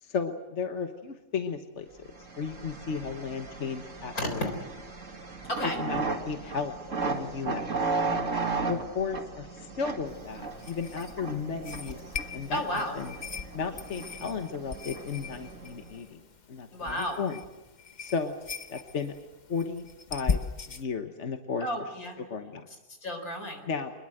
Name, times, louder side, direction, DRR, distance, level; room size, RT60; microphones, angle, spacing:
voice 1, 0.0-4.5 5.6-6.8 7.1-7.7 8.7-12.0 12.3-13.1 13.5-16.2 16.5-17.4 18.0-18.4 18.7-19.1 19.5-21.7 22.2-22.7 23.7-23.9, left 5 dB, 50° left, 6 dB, 1.5 m, -34 dB
sound 1, 2.1-16.0, right 4 dB, 55° right, 2.6 m, -36 dB
sound 2, 10.1-20.8, left 5 dB, 35° left, 0.9 m, -39 dB
voice 2, 12.5-12.9 16.7-17.2 21.6-22.2 23.0-23.6, equal, 70° left, 5 dB, 4.6 m, -32 dB
25.0 x 21.0 x 7.9 m, 1.1 s
omnidirectional pair, 1.6 m